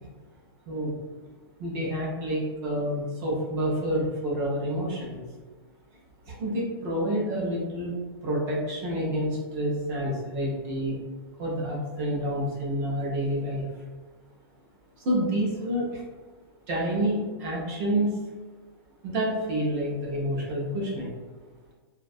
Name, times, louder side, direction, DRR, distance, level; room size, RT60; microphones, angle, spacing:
voice 1, 1.6-5.2 6.3-7.9 8.2-11.0 11.4-13.7 15.0-16.0 16.7-18.3 19.0-21.1, equal, 20° right, -4 dB, 0.4 m, -28 dB
2.4 x 2.1 x 2.5 m, 1.3 s
supercardioid pair, 175°, 13 cm